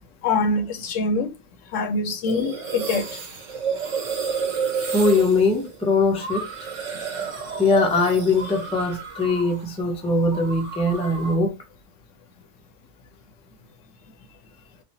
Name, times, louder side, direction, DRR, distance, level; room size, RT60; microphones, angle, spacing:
voice 1, 0.2-1.3 1.7-3.0, left 3 dB, 85° left, 1.0 m, -24 dB
sound 1, 2.3-9.7 9.9-11.5, right 6 dB, 75° right, 1.2 m, -31 dB
voice 2, 4.9-6.4 7.6-11.5, left 3 dB, 10° left, 0.3 m, -21 dB
3.2 x 2.1 x 2.6 m
omnidirectional pair, 1.3 m